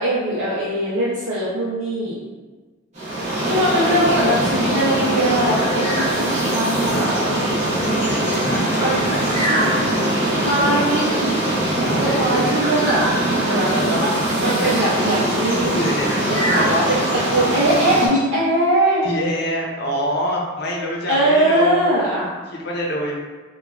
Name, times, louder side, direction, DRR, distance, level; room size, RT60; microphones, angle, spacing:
voice 1, 0.0-2.2 3.2-7.8 8.8-9.0 9.4-9.6 10.3-11.4 11.7-13.0 13.4-15.8 16.3-19.1 21.1-22.3, right 1 dB, 80° right, -10 dB, 0.6 m, -21 dB
sound 1, 3.0-18.1, right 1 dB, 35° right, 0.7 m, -21 dB
voice 2, 8.0-9.5 11.7-12.5 15.7-16.4 19.0-21.8 22.5-23.1, equal, 50° left, -2 dB, 0.5 m, -26 dB
2.9 x 2.2 x 2.3 m, 1.3 s
head